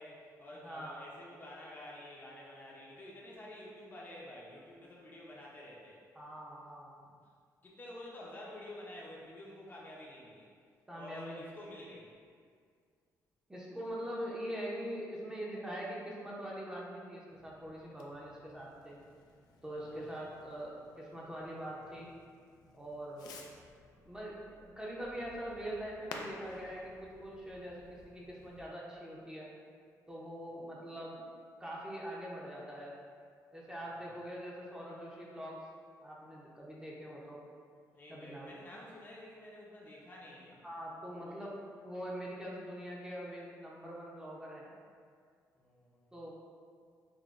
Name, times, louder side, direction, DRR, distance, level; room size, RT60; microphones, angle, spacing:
voice 1, 0.0-6.0 7.6-10.5 10.9-12.1 19.8-20.1 33.8-34.0 37.9-40.6 41.2-41.4 45.5-46.1, left 1 dB, 30° left, -4 dB, 0.6 m, -50 dB
voice 2, 0.5-1.0 6.1-6.9 10.9-11.5 13.5-19.0 19.6-22.1 22.7-23.3 24.1-29.5 30.1-31.2 31.6-32.9 33.5-35.6 36.0-37.4 38.1-38.5 40.6-41.6 41.8-44.7 46.1-46.3, equal, 10° right, -5 dB, 0.6 m, -43 dB
Fireworks, 17.3-28.7, left 3 dB, 85° left, 0.4 m, -54 dB
5.8 x 2.2 x 2.4 m, 2.1 s
cardioid pair, 115°, 7 cm